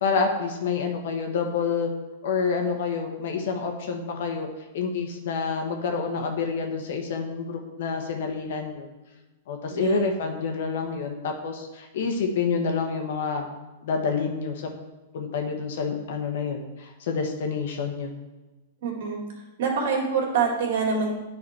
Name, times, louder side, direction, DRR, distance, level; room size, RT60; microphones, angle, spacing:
voice 1, 0.0-1.9 2.2-4.5 4.7-8.9 9.5-13.5 13.8-14.7 15.1-18.1, left 5 dB, 70° left, 3 dB, 1.4 m, -28 dB
voice 2, 9.7-10.0 18.8-19.3 19.6-21.2, right 5 dB, 70° right, -1 dB, 2.3 m, -25 dB
10.0 x 4.1 x 4.4 m, 1.1 s
hypercardioid pair, 120°, 0 cm